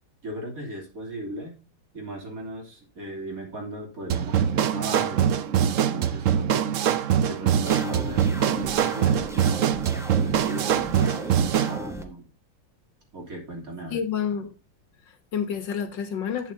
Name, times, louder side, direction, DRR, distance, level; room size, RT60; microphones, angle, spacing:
voice 1, 0.2-1.6 1.9-6.7 7.2-12.3 13.1-14.0, right 1 dB, 45° right, 0 dB, 3.5 m, -37 dB
sound 1, 4.1-11.8, right 9 dB, 85° right, 0.6 m, -23 dB
sound 2, 7.7-12.0, equal, ahead, 0.7 m, -37 dB
voice 2, 13.9-14.5 15.1-16.5, left 7 dB, 65° left, 8 dB, 1.7 m, -29 dB
11.5 x 8.1 x 2.7 m, 0.32 s
omnidirectional pair, 2.2 m